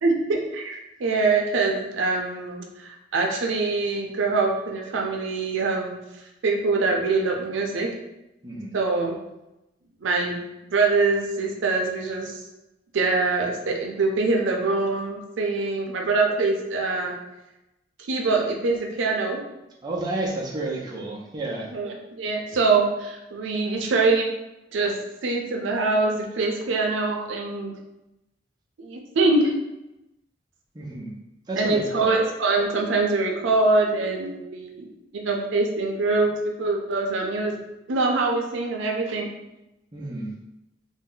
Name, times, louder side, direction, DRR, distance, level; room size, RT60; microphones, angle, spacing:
voice 1, 0.0-6.0 6.4-7.9 8.7-9.2 10.0-10.4 10.7-12.4 12.9-17.1 18.1-19.4 21.7-24.3 24.7-27.7 28.8-29.5 31.6-34.9 35.1-37.6 37.9-39.3, right 3 dB, 90° right, 1 dB, 0.5 m, -24 dB
voice 2, 8.4-8.8 19.8-21.7 30.7-31.1 31.5-32.1 39.9-40.3, right 2 dB, 20° right, -3 dB, 0.5 m, -30 dB
2.6 x 2.1 x 3.8 m, 0.93 s
head